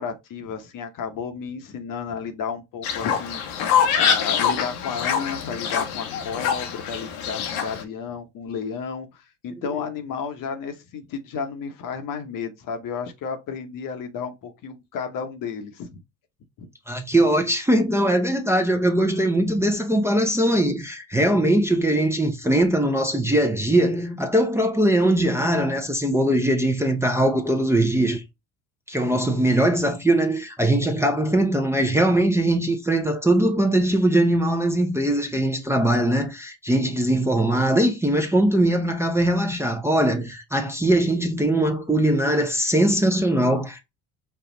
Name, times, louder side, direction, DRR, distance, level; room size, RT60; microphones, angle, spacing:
voice 1, 0.0-3.7 4.0-16.0 16.6-16.7, left 6 dB, 45° left, 1.0 m, -32 dB
Fowl, 2.8-7.8, left 7 dB, 70° left, 0.9 m, -24 dB
voice 2, 16.9-28.2 28.9-43.8, right 1 dB, 5° right, 0.8 m, -21 dB
5.3 x 2.2 x 3.8 m
hypercardioid pair, 70°, 45 cm